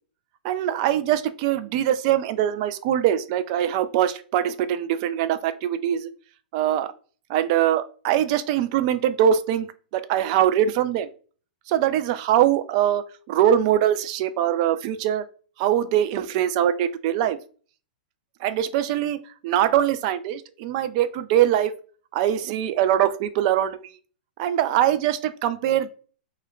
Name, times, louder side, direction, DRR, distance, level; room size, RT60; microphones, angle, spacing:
voice 1, 0.4-6.1 6.5-6.9 7.3-11.1 11.7-15.3 15.6-17.4 18.4-21.7 22.1-23.9 24.4-25.9, right 11 dB, 45° right, 12 dB, 0.3 m, -22 dB
2.2 x 2.1 x 3.6 m, 0.40 s
hypercardioid pair, 135°, 5 cm